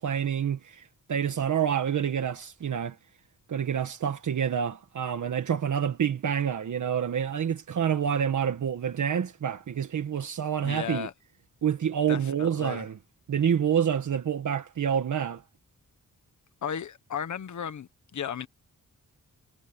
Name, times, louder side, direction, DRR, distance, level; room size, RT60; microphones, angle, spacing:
voice 1, 0.0-3.0 3.5-11.1 11.6-13.0 13.3-15.4, right 8 dB, 65° right, 1.5 m, -28 dB
voice 2, 10.6-11.1 12.1-12.8 16.6-18.5, left 8 dB, 60° left, 1.3 m, -35 dB
wide cardioid pair, 170°, 32 cm